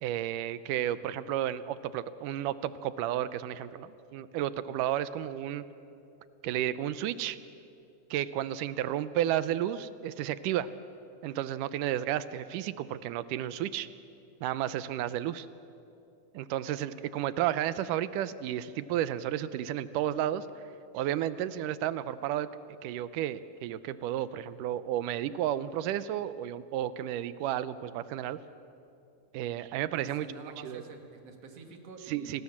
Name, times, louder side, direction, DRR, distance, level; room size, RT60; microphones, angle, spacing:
voice 1, 0.0-5.6 6.4-7.4 8.1-10.7 11.2-13.9 14.4-15.5 16.3-20.5 20.9-22.5 22.8-28.4 29.3-30.3 30.6-30.8 32.1-32.4, right 12 dB, 85° right, 15 dB, 2.2 m, -32 dB
voice 2, 30.0-32.4, right 4 dB, 50° right, 4 dB, 2.9 m, -47 dB
28.5 x 20.0 x 7.2 m, 2.7 s
omnidirectional pair, 3.7 m